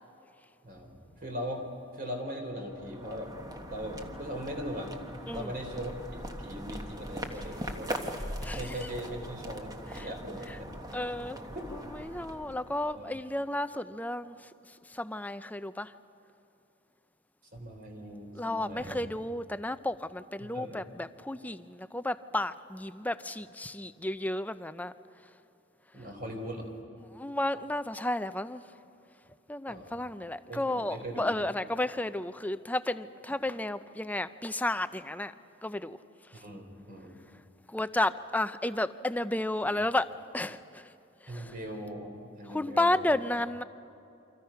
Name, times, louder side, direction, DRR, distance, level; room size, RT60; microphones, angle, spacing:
voice 1, 0.6-1.7 1.9-4.9 5.3-8.0 8.5-10.7 11.5-11.7 12.8-13.1 17.5-19.0 20.4-20.8 25.9-26.7 29.7-30.0 30.5-31.3 36.3-37.2 41.3-43.1, equal, 45° right, 3 dB, 3.6 m, -40 dB
sound 1, 2.5-13.2, equal, 20° right, 1.3 m, -41 dB
voice 2, 8.4-8.9 9.9-10.1 10.5-10.6 10.9-11.4 11.7-15.9 18.3-24.9 27.1-28.6 29.5-35.3 35.6-36.0 36.3-36.4 37.7-40.9 41.2-41.5 42.5-43.6, left 1 dB, 10° left, 12 dB, 0.5 m, -32 dB
29.0 x 25.5 x 5.8 m, 2.7 s
head